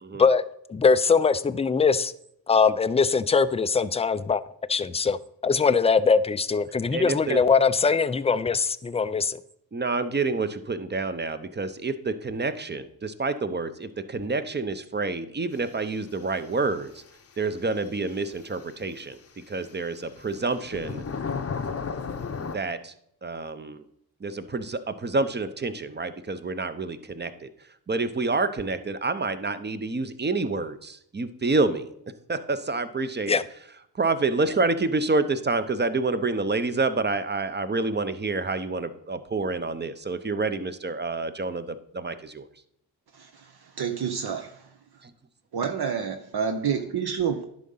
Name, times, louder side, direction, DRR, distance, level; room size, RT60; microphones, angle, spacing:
voice 1, 0.2-2.1 2.5-4.4 4.7-5.2 5.4-9.4 33.3-33.4, left 5 dB, 15° left, 14 dB, 0.3 m, -22 dB
voice 2, 6.9-7.4 9.7-17.0 17.4-19.2 19.5-21.0 22.4-22.9 23.2-23.8 24.2-27.5 27.9-31.9 32.3-33.4 34.0-42.5 45.0-45.1, right 3 dB, 25° right, 12 dB, 0.7 m, -28 dB
sound 1, 17.9-18.0 20.0-22.6, left 5 dB, 30° left, 0.7 m, -33 dB
voice 3, 43.1-44.6 45.5-47.4, right 7 dB, 60° right, 6 dB, 0.8 m, -29 dB
11.0 x 3.8 x 5.6 m, 0.73 s
cardioid pair, 60°, 45 cm